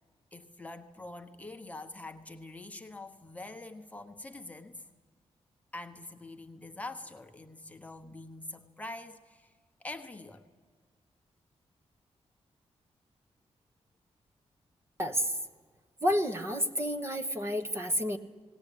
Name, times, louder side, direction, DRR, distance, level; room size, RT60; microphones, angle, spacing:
voice 1, 0.3-4.9 5.7-9.5 9.8-10.4, left 2 dB, 15° left, 5 dB, 1.1 m, -45 dB
voice 2, 15.0-15.3 16.0-18.2, equal, 25° right, 4 dB, 1.2 m, -30 dB
19.5 x 17.5 x 10.0 m, 1.5 s
wide cardioid pair, 140°, 11 cm